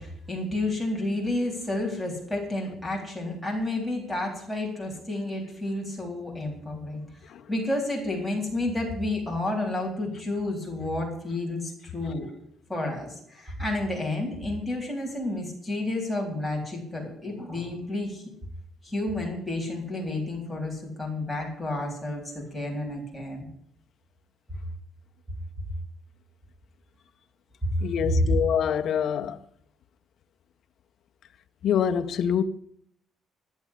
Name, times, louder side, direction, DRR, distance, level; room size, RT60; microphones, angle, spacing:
voice 1, 0.0-7.0 7.5-12.3 12.7-18.2 18.8-23.5 27.6-28.2, left 1 dB, ahead, 3.7 m, -30 dB
voice 2, 27.8-29.4 31.6-32.4, left 8 dB, 50° left, 0.8 m, -25 dB
11.5 x 7.3 x 9.8 m
cardioid pair, 170°, 0 cm